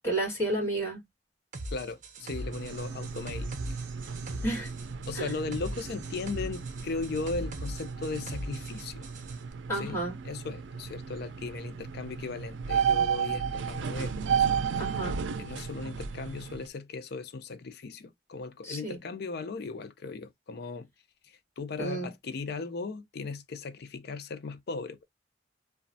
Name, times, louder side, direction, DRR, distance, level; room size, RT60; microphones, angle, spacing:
voice 1, 0.0-1.0 4.4-4.7 5.2-5.3 9.7-10.2 14.8-15.2 18.6-19.0 21.8-22.1, right 2 dB, 15° left, 1.7 m, -31 dB
sound 1, 1.5-9.4, right 1 dB, 45° right, 0.6 m, -40 dB
voice 2, 1.7-3.8 5.1-9.1 9.7-10.0 10.2-14.6 15.4-20.9 21.6-25.0, left 4 dB, 60° left, 0.5 m, -37 dB
sound 2, 2.2-16.7, right 7 dB, 85° right, 0.4 m, -33 dB
2.9 x 2.3 x 2.6 m
head